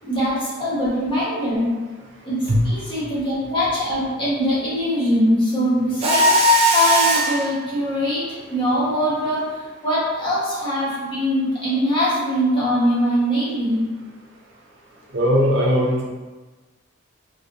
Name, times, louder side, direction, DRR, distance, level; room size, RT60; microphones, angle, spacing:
voice 1, 0.0-1.8 2.2-13.9, equal, 25° left, -10 dB, 1.4 m, -22 dB
Mechanisms, 6.0-7.5, right 1 dB, 30° right, 0.4 m, -17 dB
voice 2, 15.1-16.0, equal, 55° right, -3 dB, 0.7 m, -18 dB
3.4 x 3.3 x 2.7 m, 1.3 s
head